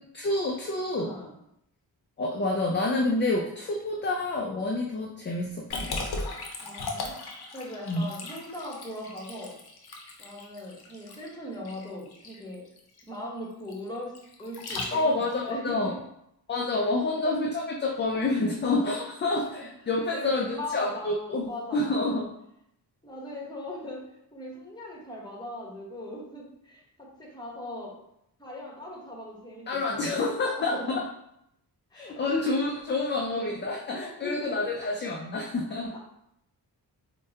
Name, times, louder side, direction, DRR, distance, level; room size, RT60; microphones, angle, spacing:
voice 1, 0.1-1.1 2.2-6.3 7.9-8.1 14.9-15.9 16.5-22.3 29.7-31.0 31.9-35.9, left 2 dB, 30° left, 0 dB, 0.4 m, -28 dB
voice 2, 1.0-1.3 6.6-7.1 7.5-9.5 10.2-12.7 13.1-14.1 14.4-16.0 16.7-16.8 18.1-18.2 19.2-19.7 20.1-21.9 23.0-24.0 24.3-28.0 28.4-30.0 30.6-31.0 31.9-32.4 33.2-33.5 33.9-34.6 35.7-36.0, left 1 dB, 10° left, -2 dB, 1.0 m, -39 dB
Liquid, 5.7-15.3, left 3 dB, 70° left, 0.7 m, -38 dB
4.6 x 2.2 x 2.7 m, 0.77 s
cardioid pair, 80°, 39 cm